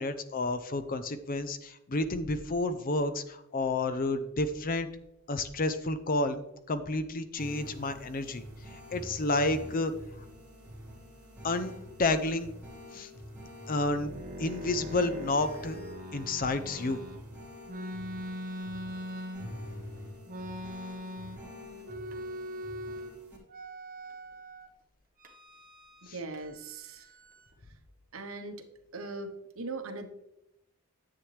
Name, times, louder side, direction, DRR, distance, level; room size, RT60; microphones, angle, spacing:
voice 1, 0.0-4.9 5.3-8.4 8.9-9.9 11.4-11.7 12.0-12.5 12.9-13.1 13.7-14.1 14.4-15.8 16.1-17.0, left 2 dB, 40° left, 11 dB, 0.6 m, -30 dB
sound 1, 7.4-23.4, equal, 5° right, 3.1 m, -47 dB
sound 2, 13.7-17.2 17.7-19.8 20.3-21.5 21.8-23.1 23.5-24.7 25.2-26.1 26.3-27.5, equal, 40° right, 1.2 m, -42 dB
voice 2, 26.0-27.1 28.1-28.7 28.9-30.1, right 3 dB, 65° right, 6 dB, 1.1 m, -40 dB
10.0 x 7.6 x 3.3 m, 0.86 s
head